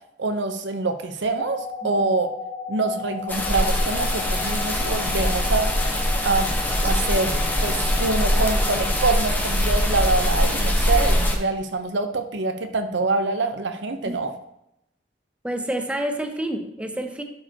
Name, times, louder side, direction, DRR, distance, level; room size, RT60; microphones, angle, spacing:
voice 1, 0.2-2.3 2.7-5.7 6.2-6.6 6.8-14.3, right 3 dB, 80° right, 8 dB, 0.8 m, -25 dB
sound 1, 1.4-9.2, left 5 dB, 75° left, 2.1 m, -34 dB
sound 2, 3.3-11.4, equal, 10° left, 1.1 m, -22 dB
voice 2, 15.4-17.2, right 1 dB, 5° right, 5 dB, 0.7 m, -28 dB
11.5 x 5.0 x 2.9 m, 0.81 s
head